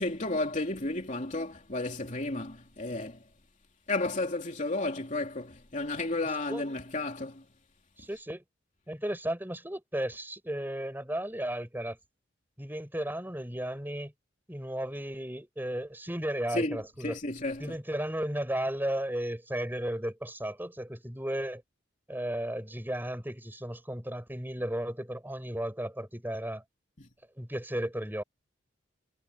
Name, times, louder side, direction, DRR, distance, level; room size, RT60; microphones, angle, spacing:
voice 1, 0.0-3.2 3.9-7.4 16.5-17.8 27.0-27.1, left 2 dB, 40° left, 3.0 m, -33 dB
voice 2, 8.0-8.4 8.9-12.0 12.6-14.1 14.5-17.2 17.6-21.6 22.1-26.6 27.4-28.2, right 1 dB, 10° right, 6.9 m, -34 dB
head